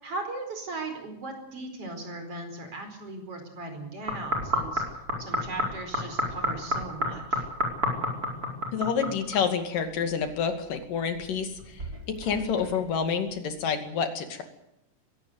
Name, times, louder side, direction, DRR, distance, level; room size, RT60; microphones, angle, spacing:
voice 1, 0.0-4.8 5.2-7.5, right 2 dB, 45° right, 6 dB, 5.6 m, -38 dB
sound 1, 4.1-9.5 9.8-10.8 11.1-13.0 13.6-13.7, equal, 25° right, 5.4 m, -31 dB
voice 2, 8.7-14.4, left 6 dB, 90° left, 7 dB, 4.0 m, -28 dB
21.5 x 17.5 x 8.1 m, 0.84 s
omnidirectional pair, 3.7 m